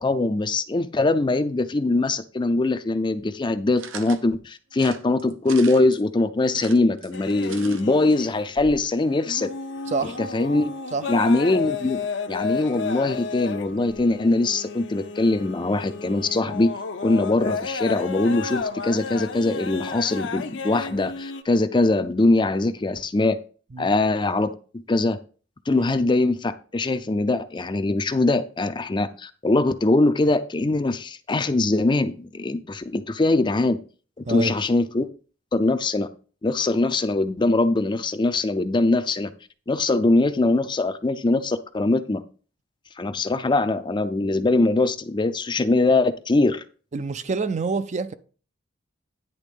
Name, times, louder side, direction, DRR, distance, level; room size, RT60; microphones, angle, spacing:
voice 1, 0.0-9.5 10.0-10.7 11.1-12.0 12.3-16.7 17.0-23.4 23.8-25.2 25.7-33.8 34.2-35.1 35.5-36.1 36.4-39.3 39.7-42.2 43.0-46.6, left 2 dB, 25° left, 0.5 m, -22 dB
sound 1, 3.8-4.2 4.7-6.0 6.5-7.8 8.1-8.2 8.4-8.5, right 7 dB, 80° right, 0.8 m, -41 dB
sound 2, 7.1-8.9 9.2-21.4, left 5 dB, 65° left, 0.7 m, -33 dB
voice 2, 9.9-10.2 10.9-11.1 23.7-23.9 25.7-25.9 34.2-34.5 46.9-48.1, right 4 dB, 35° right, 0.5 m, -27 dB
10.0 x 3.6 x 5.2 m
head